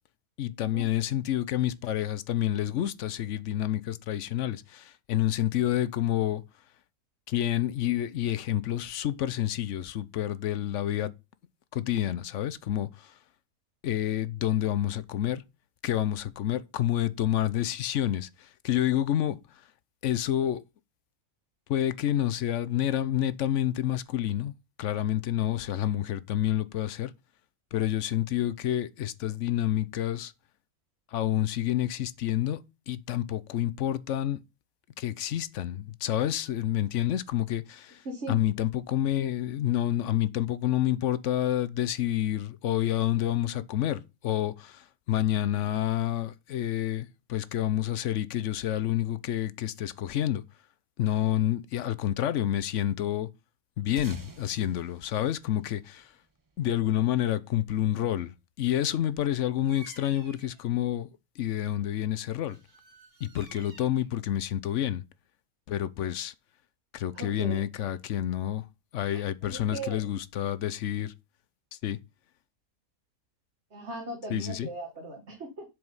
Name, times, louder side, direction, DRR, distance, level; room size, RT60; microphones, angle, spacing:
voice 1, 0.4-6.4 7.3-11.1 11.7-13.1 13.8-15.4 15.8-19.4 20.0-20.6 21.7-24.5 24.8-27.1 27.7-30.3 31.1-34.4 35.0-38.0 38.3-50.4 51.0-53.3 53.8-56.1 56.6-61.1 61.4-62.6 63.2-65.0 65.7-66.3 66.9-68.6 68.9-71.1 71.8-72.0 74.3-74.7, left 12 dB, 65° left, 0.9 m, -28 dB
voice 2, 38.0-38.4 67.1-67.6 69.0-70.0 73.7-75.7, right 2 dB, 50° right, 2.0 m, -38 dB
sound 1, 54.0-56.7, right 3 dB, 25° right, 0.4 m, -48 dB
Bird vocalization bird call bird song, 59.6-60.6 62.5-64.1, right 3 dB, 85° right, 2.4 m, -52 dB
7.8 x 4.8 x 5.4 m
omnidirectional pair, 1.5 m